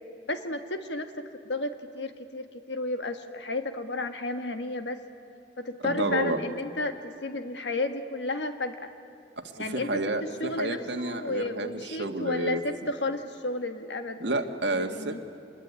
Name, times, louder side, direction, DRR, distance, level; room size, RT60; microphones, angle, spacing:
voice 1, 0.3-5.0 5.6-8.9 9.6-10.0 10.4-14.3 14.6-15.2, left 2 dB, 75° left, 8 dB, 1.8 m, -32 dB
voice 2, 5.8-6.4 9.4-12.6 14.2-15.2, right 2 dB, 75° right, 5 dB, 1.8 m, -30 dB
26.0 x 21.0 x 9.7 m, 2.7 s
head